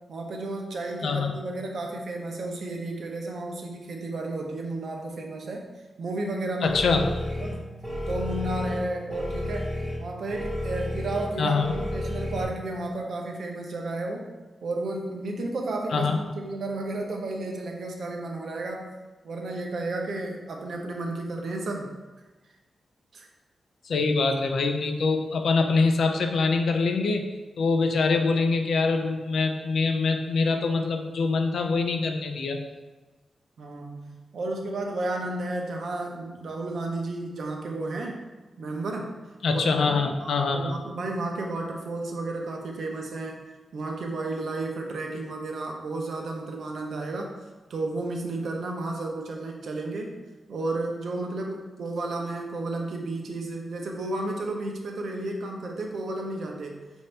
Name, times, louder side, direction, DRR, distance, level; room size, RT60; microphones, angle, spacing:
voice 1, 0.1-5.7 6.0-6.8 7.4-7.6 8.1-9.7 10.0-14.3 14.6-18.9 19.2-21.9 23.1-23.3 33.6-38.2 38.6-39.1 39.5-43.4 43.7-47.3 47.7-50.2 50.5-56.8, right 2 dB, 65° right, 1 dB, 0.6 m, -32 dB
voice 2, 1.0-1.3 6.6-7.1 11.4-11.7 15.9-16.2 23.9-27.2 27.6-32.6 39.4-40.8, left 4 dB, 75° left, 5 dB, 0.5 m, -24 dB
Danger Alarm, 6.7-12.4, left 1 dB, ahead, 0.8 m, -32 dB
5.4 x 2.7 x 3.3 m, 1.2 s
wide cardioid pair, 155°, 0 cm